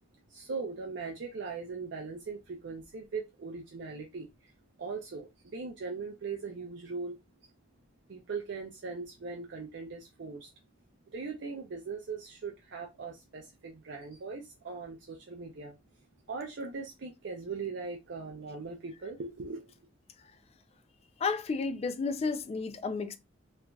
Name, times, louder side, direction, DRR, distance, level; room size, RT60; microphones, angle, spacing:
voice 1, 0.3-4.5 4.8-7.2 8.1-10.5 11.1-15.8 16.3-19.7, right 4 dB, 65° right, 0.5 m, -40 dB
voice 2, 21.2-23.2, left 4 dB, 35° left, 0.3 m, -32 dB
3.2 x 2.4 x 2.2 m
head